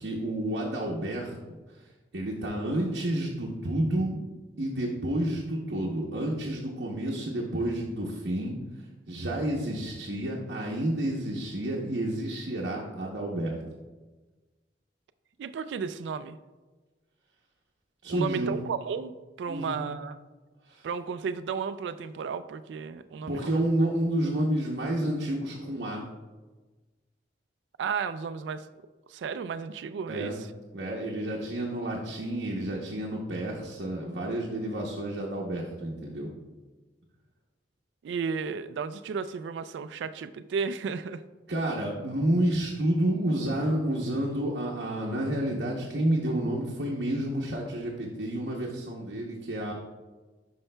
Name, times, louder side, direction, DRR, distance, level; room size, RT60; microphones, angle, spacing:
voice 1, 0.0-1.8 2.1-4.1 4.6-8.6 9.1-13.6 18.0-18.5 19.5-19.8 20.7-20.9 23.2-26.1 30.1-30.4 30.7-36.3 41.5-49.7, right 1 dB, 65° right, -3 dB, 0.8 m, -30 dB
voice 2, 15.4-16.4 18.1-19.1 19.4-20.1 20.8-23.7 27.8-28.7 29.1-30.3 38.0-41.2, right 6 dB, 80° right, 12 dB, 0.3 m, -33 dB
9.7 x 5.6 x 2.2 m, 1.2 s
head